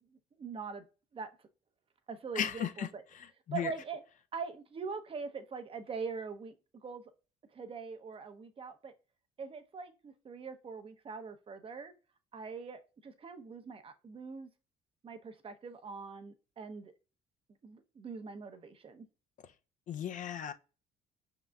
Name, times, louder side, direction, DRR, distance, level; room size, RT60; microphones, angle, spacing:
voice 1, 0.4-0.8 1.1-1.3 2.1-3.0 3.5-4.0 4.3-6.5 6.8-7.0 7.5-8.9 9.4-11.9 12.3-14.5 15.0-16.9 17.6-19.1, right 5 dB, 35° right, 0.7 m, -42 dB
voice 2, 2.4-2.9 3.5-3.7 19.9-20.5, left 9 dB, 50° left, 0.5 m, -35 dB
5.3 x 3.7 x 2.3 m
cardioid pair, 110°, 17 cm